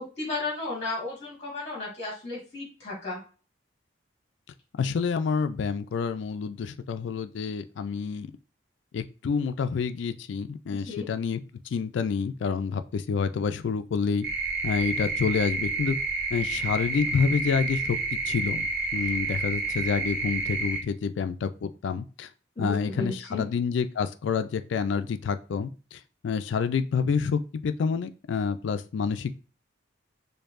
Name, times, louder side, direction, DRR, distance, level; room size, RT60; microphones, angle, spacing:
voice 1, 0.0-3.2 10.7-11.1 22.5-23.0 23.3-23.4, left 3 dB, 35° left, -4 dB, 1.6 m, -34 dB
voice 2, 4.8-8.3 8.9-14.3 14.6-16.0 16.3-22.3 22.6-29.3, left 5 dB, 75° left, 10 dB, 0.3 m, -28 dB
sound 1, 14.2-20.8, right 3 dB, 55° right, 1.2 m, -29 dB
4.5 x 2.6 x 2.5 m, 0.35 s
head